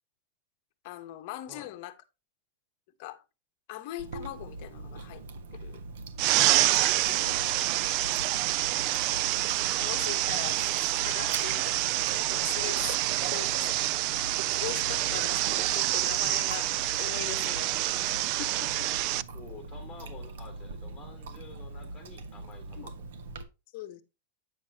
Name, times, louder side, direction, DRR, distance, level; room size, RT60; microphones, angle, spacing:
voice 1, 0.8-2.0 3.0-3.2 3.7-5.2 5.5-5.8 7.0-7.5 8.5-8.6 9.8-10.7 11.0-13.0 13.3-13.7 14.6-16.7 17.0-17.7 18.0-18.1 18.4-18.9 22.8-22.9 23.7-24.0, left 13 dB, 40° left, 1.1 m, -41 dB
Chewing mastication, 4.0-23.4, right 3 dB, 75° right, 1.3 m, -42 dB
sound 1, 6.2-19.2, right 16 dB, 35° right, 0.3 m, -27 dB
voice 2, 7.4-7.7 13.2-13.5 19.3-22.9, left 4 dB, 5° left, 3.5 m, -49 dB
9.3 x 7.0 x 2.8 m
supercardioid pair, 175°, 0 cm